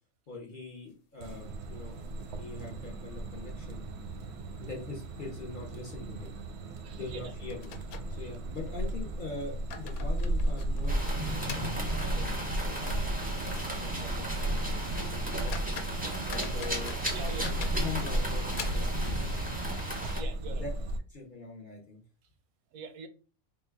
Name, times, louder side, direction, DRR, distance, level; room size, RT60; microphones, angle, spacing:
voice 1, 0.3-2.0 2.3-3.9 4.6-6.3 7.0-7.8 8.1-11.0 11.3-11.8 12.0-13.5 13.8-15.7 16.3-17.0 17.8-19.5 20.5-20.7 21.1-22.0, left 4 dB, 50° left, 0.6 m, -43 dB
sound 1, 0.8-1.7 2.1-2.2 2.5-2.6 3.2-3.7 4.0-4.1 4.7-4.9 5.2-5.4 6.8-6.9 7.5-8.7 9.3-12.5 12.9-13.0 13.5-13.7 14.1-14.2 14.8-14.9 15.3-19.1, left 7 dB, 85° left, 1.0 m, -46 dB
sound 2, 1.2-21.0, right 1 dB, 65° right, 0.7 m, -35 dB
voice 2, 6.8-7.3 17.1-17.7 20.1-20.6 22.7-23.1, right 5 dB, 90° right, 1.1 m, -42 dB
sound 3, 10.9-20.2, right 1 dB, 10° right, 0.6 m, -35 dB
3.7 x 2.2 x 3.4 m
omnidirectional pair, 1.5 m